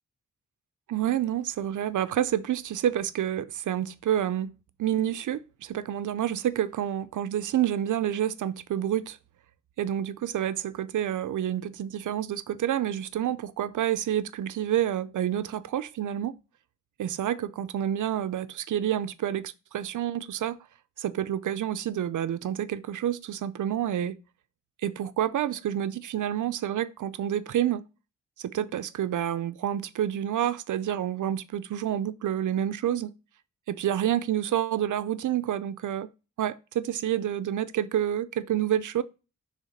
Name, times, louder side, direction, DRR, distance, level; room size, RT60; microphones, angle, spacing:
voice 1, 0.9-4.5 4.8-9.2 9.8-16.4 17.0-20.6 21.0-24.1 24.8-27.8 28.4-33.1 33.7-36.1 36.4-39.0, right 11 dB, 80° right, 0.5 m, -28 dB
6.3 x 3.6 x 5.2 m
wide cardioid pair, 105°, 30 cm